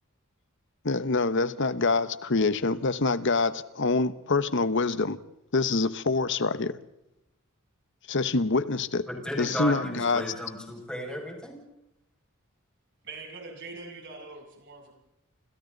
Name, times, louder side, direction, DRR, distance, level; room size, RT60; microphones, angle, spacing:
voice 1, 0.8-5.2 5.5-6.8 8.1-9.1 9.4-10.3, left 3 dB, 60° left, 14 dB, 1.0 m, -25 dB
voice 2, 9.1-11.6, left 1 dB, 5° left, 0 dB, 6.3 m, -34 dB
voice 3, 13.0-14.9, right 3 dB, 60° right, 0 dB, 7.9 m, -43 dB
29.0 x 27.0 x 4.0 m, 0.86 s
head